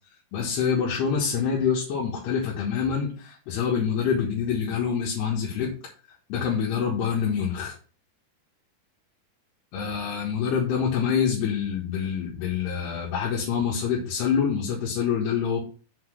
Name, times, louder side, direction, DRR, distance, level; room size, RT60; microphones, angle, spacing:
voice 1, 0.3-5.7 6.3-7.8 9.7-15.6, left 7 dB, 90° left, -3 dB, 3.6 m, -26 dB
7.1 x 3.9 x 6.6 m, 0.38 s
omnidirectional pair, 4.6 m